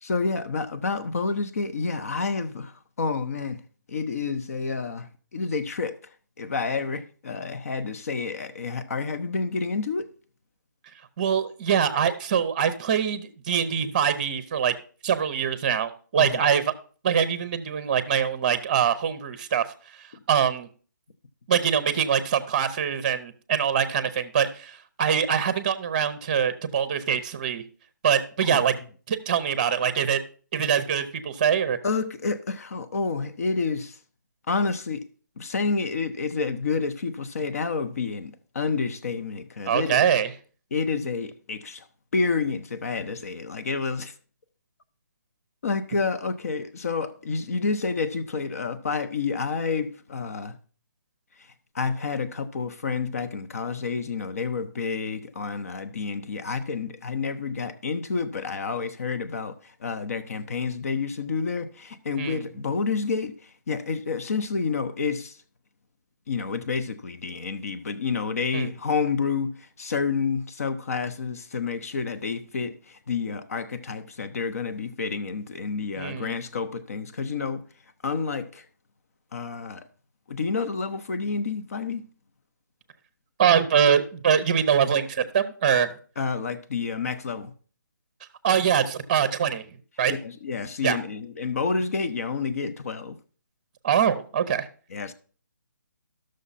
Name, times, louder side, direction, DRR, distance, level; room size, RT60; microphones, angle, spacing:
voice 1, 0.0-3.6 3.9-6.0 6.4-10.1 16.2-16.4 20.1-20.2 28.4-28.6 31.8-34.0 34.5-35.0 35.4-40.0 40.7-41.9 42.1-44.1 45.6-50.6 51.7-65.4 66.3-77.7 78.0-78.7 79.3-79.9 80.3-82.1 86.2-87.5 90.1-93.2 94.9-95.1, left 4 dB, 50° left, 0.9 m, -29 dB
voice 2, 11.2-14.7 15.0-16.7 17.0-19.6 20.0-20.7 21.5-27.6 28.0-28.7 29.1-30.2 30.5-31.8 39.7-40.3 62.2-62.5 68.5-68.7 76.0-76.4 83.4-85.9 88.4-90.1 90.8-91.0 93.8-94.7, right 8 dB, 25° right, 0.7 m, -23 dB
12.5 x 6.5 x 4.1 m
hypercardioid pair, 170°, 10 cm